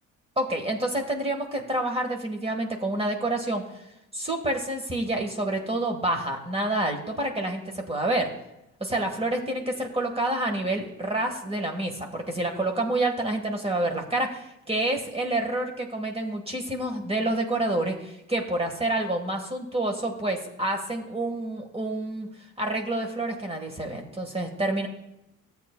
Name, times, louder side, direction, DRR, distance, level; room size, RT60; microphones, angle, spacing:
voice 1, 0.4-3.8 4.1-8.3 8.8-22.3 22.6-24.9, right 1 dB, 20° right, 3 dB, 1.5 m, -28 dB
13.5 x 8.3 x 2.2 m, 0.88 s
cardioid pair, 90°, 30 cm